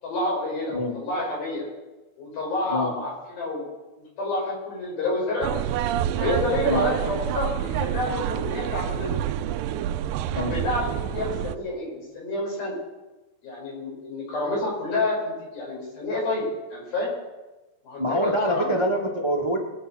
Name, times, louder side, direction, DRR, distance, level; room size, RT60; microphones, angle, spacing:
voice 1, 0.0-1.7 2.2-3.7 4.0-5.5 6.2-9.2 10.4-12.8 13.4-17.1 17.8-18.7, left 2 dB, 85° left, -4 dB, 7.4 m, -29 dB
sound 1, 5.4-11.6, right 11 dB, 85° right, 2.3 m, -27 dB
voice 2, 18.0-19.6, equal, 40° right, 1 dB, 0.4 m, -25 dB
22.5 x 8.1 x 6.3 m, 1.1 s
omnidirectional pair, 4.1 m